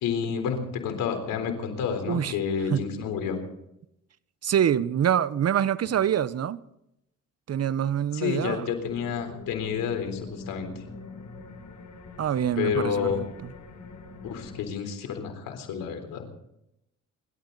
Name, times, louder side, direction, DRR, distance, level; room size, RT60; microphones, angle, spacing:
voice 1, 0.0-3.4 8.1-10.7 12.6-13.2 14.2-16.3, left 7 dB, 85° left, 4.0 m, -29 dB
voice 2, 4.4-6.6 7.5-8.6 12.2-13.3, right 9 dB, 50° right, 0.9 m, -25 dB
sound 1, 8.7-14.6, left 4 dB, 60° left, 5.2 m, -44 dB
28.5 x 12.5 x 4.1 m
cardioid pair, 85°, 32 cm